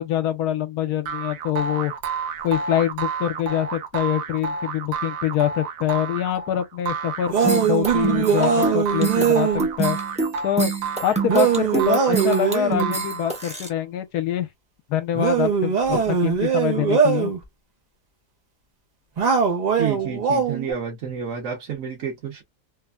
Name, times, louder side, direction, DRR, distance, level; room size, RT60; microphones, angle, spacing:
voice 1, 0.0-1.9 2.4-9.5 9.8-10.0 10.4-10.7 11.0-14.5 14.9-17.3, left 11 dB, 75° left, 1.2 m, -25 dB
sound 1, 1.1-13.6, right 5 dB, 90° right, 1.2 m, -31 dB
sound 2, 7.3-9.7 11.3-12.9 15.1-17.4 19.2-20.7, right 6 dB, 75° right, 0.4 m, -21 dB
sound 3, 7.5-13.7, right 4 dB, 5° right, 0.5 m, -26 dB
voice 2, 19.8-22.4, right 7 dB, 55° right, 1.1 m, -29 dB
3.3 x 2.1 x 2.3 m
omnidirectional pair, 1.7 m